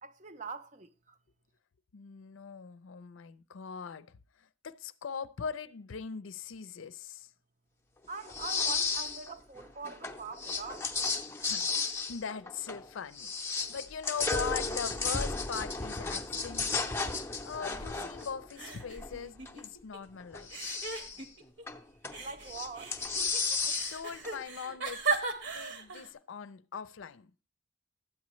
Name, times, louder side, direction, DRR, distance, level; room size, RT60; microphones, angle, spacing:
voice 1, 0.0-1.2 8.1-10.9 22.2-23.0, right 4 dB, 40° right, 0.6 m, -43 dB
voice 2, 1.9-7.3 11.4-20.7 23.6-25.2 25.5-27.3, left 6 dB, 85° left, 0.5 m, -41 dB
sound 1, 8.3-9.3 9.6-12.9 13.2-19.7 20.2-21.2 21.7-22.2 22.5-24.3, left 4 dB, 10° left, 0.6 m, -34 dB
sound 2, 17.7-18.2 18.6-20.0 20.5-21.6 22.1-26.1, right 5 dB, 65° right, 1.4 m, -37 dB
13.0 x 8.5 x 3.1 m
head